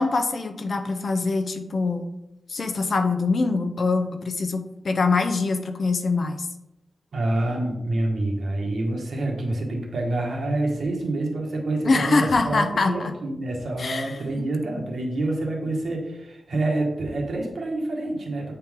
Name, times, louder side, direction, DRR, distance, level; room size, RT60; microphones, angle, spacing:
voice 1, 0.0-2.1 2.5-6.5 11.8-13.1 13.8-14.5, left 3 dB, 60° left, 7 dB, 0.7 m, -24 dB
voice 2, 7.1-18.5, right 2 dB, 70° right, -1 dB, 1.7 m, -27 dB
8.4 x 4.4 x 3.7 m, 0.91 s
wide cardioid pair, 100°, 0 cm